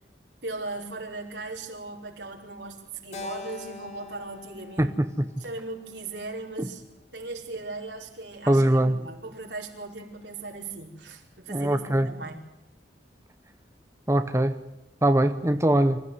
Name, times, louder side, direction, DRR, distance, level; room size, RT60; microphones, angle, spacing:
voice 1, 0.4-4.9 5.4-6.8 7.1-12.4, right 2 dB, 80° right, 1 dB, 5.0 m, -38 dB
Keyboard (musical), 3.1-7.5, left 4 dB, 40° left, 2.5 m, -45 dB
voice 2, 4.8-5.3 6.6-6.7 8.5-9.0 11.5-12.1 14.1-14.6 15.0-16.0, right 1 dB, 15° right, 9 dB, 0.9 m, -22 dB
25.5 x 15.5 x 9.4 m, 0.95 s
head